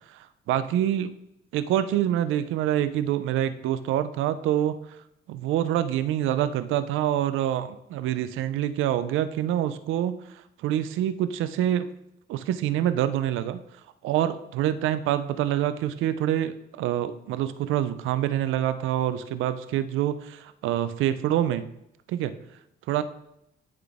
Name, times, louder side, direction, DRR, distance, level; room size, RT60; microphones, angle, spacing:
voice 1, 0.1-1.1 1.5-4.8 5.3-10.2 10.6-11.9 12.3-13.6 14.0-21.7 22.1-22.3 22.9-23.0, right 11 dB, 90° right, 12 dB, 0.5 m, -26 dB
12.0 x 3.9 x 3.6 m, 0.81 s
cardioid pair, 90°, 20 cm